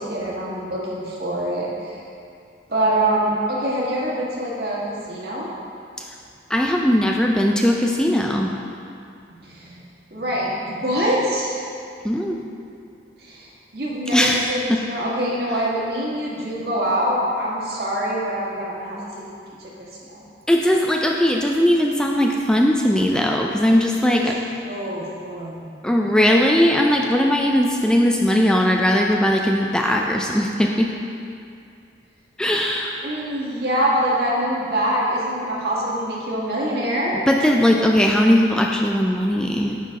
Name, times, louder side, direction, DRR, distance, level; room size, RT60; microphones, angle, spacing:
voice 1, 0.0-2.0 2.7-5.5 9.3-9.8 10.1-11.6 13.2-19.3 19.6-19.7 20.0-20.2 24.1-24.2 24.7-25.7 33.0-37.2, right 1 dB, 60° right, -5 dB, 1.7 m, -25 dB
voice 2, 6.5-8.5 12.0-12.4 14.1-14.4 14.7-14.8 20.5-24.4 25.8-30.9 32.4-33.1 37.3-39.8, equal, 5° left, 0 dB, 0.3 m, -19 dB
9.6 x 6.2 x 3.6 m, 2.5 s
head